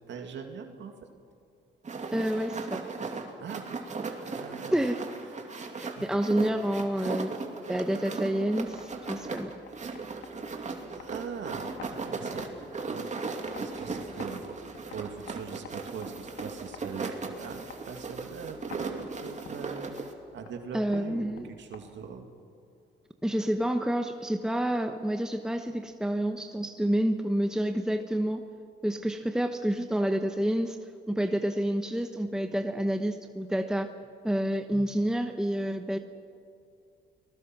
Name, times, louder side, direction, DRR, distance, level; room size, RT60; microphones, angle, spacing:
voice 1, 0.1-1.1 3.4-3.8 4.3-4.8 5.2-5.4 6.0-6.1 11.0-12.4 12.9-13.1 13.5-14.5 14.9-20.0 20.3-22.3, right 6 dB, 65° right, 4 dB, 2.3 m, -41 dB
sound 1, 1.8-20.1, right 4 dB, 35° right, 2.7 m, -37 dB
voice 2, 2.1-2.9 4.7-5.0 5.7-7.3 7.7-9.5 20.7-21.4 23.2-28.4 28.8-30.8 31.1-33.9 34.2-36.0, right 1 dB, 5° right, 6 dB, 1.1 m, -28 dB
sound 2, 8.5-22.2, left 6 dB, 85° left, 2.3 m, -51 dB
29.5 x 20.5 x 6.1 m, 2.5 s
cardioid pair, 90°, 20 cm